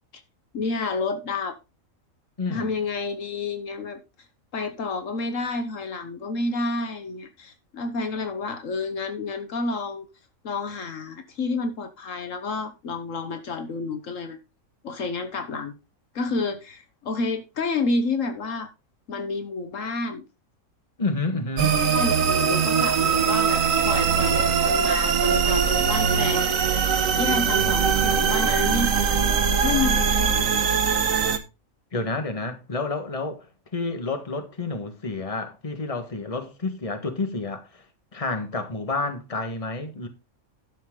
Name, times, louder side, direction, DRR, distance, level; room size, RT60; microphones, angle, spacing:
voice 1, 0.5-1.6 2.5-4.0 4.5-10.0 10.4-14.4 14.8-15.7 16.1-18.7 19.1-20.2 21.9-26.5 27.2-28.9 29.6-30.5, left 3 dB, 70° left, 1.4 m, -29 dB
voice 2, 2.4-2.7 21.0-21.8 31.9-37.8 38.1-40.1, left 3 dB, 25° left, 1.5 m, -29 dB
sound 1, 21.6-31.4, right 6 dB, 75° right, 1.5 m, -21 dB
11.5 x 7.3 x 3.7 m
omnidirectional pair, 1.4 m